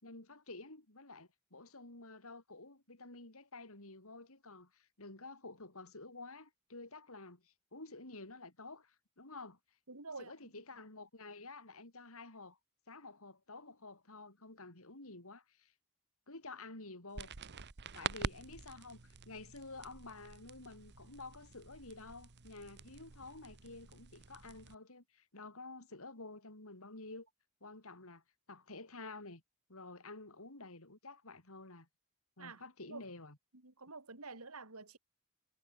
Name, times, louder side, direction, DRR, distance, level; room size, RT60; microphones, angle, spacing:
voice 1, 0.0-9.6 10.2-12.6 12.9-15.7 16.3-17.3 17.9-27.3 27.6-28.2 28.5-29.4 29.7-31.9 32.4-33.4, left 3 dB, 70° left, 4.4 m, -51 dB
voice 2, 9.9-10.3 32.4-32.6 32.9-33.0 33.6-35.0, right 3 dB, 75° right, 3.9 m, -48 dB
sound 1, 17.1-24.7, right 5 dB, 50° right, 1.1 m, -47 dB
head